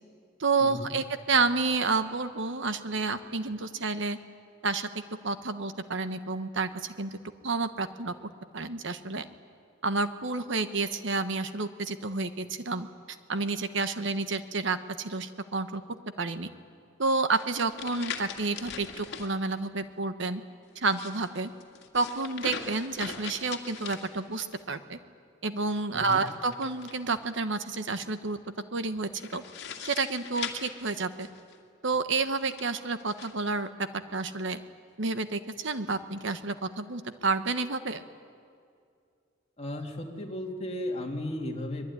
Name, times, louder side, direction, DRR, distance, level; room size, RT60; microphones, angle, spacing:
voice 1, 0.4-4.2 4.6-7.2 7.4-8.1 8.5-9.3 9.8-12.9 13.3-15.8 16.2-16.5 17.0-20.4 20.7-21.5 21.9-25.0 25.4-28.4 28.7-29.4 29.8-31.3 31.8-34.6 35.0-38.0, right 3 dB, 65° right, 10 dB, 1.2 m, -30 dB
sound 1, 17.3-19.3 20.7-24.6 26.0-27.3 29.2-31.6 32.3-33.3, left 6 dB, 60° left, 2.3 m, -41 dB
voice 2, 25.9-26.2 39.6-41.8, left 1 dB, 30° left, 1 dB, 2.7 m, -35 dB
24.0 x 21.0 x 9.9 m, 2.3 s
head